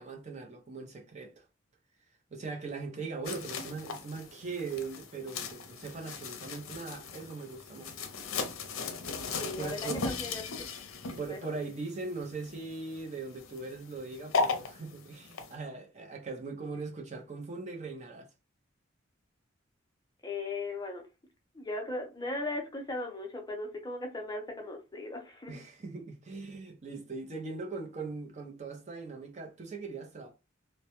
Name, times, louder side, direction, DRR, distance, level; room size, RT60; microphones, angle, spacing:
voice 1, 0.0-1.5 2.3-8.0 9.6-10.0 11.2-18.3 25.5-30.3, right 4 dB, 35° right, 0.4 m, -40 dB
sound 1, 3.2-15.5, left 4 dB, 85° left, 0.5 m, -38 dB
voice 2, 9.4-10.4 11.3-11.4 20.2-21.0 21.5-25.5, left 2 dB, 20° left, 0.5 m, -37 dB
2.1 x 2.0 x 2.8 m
head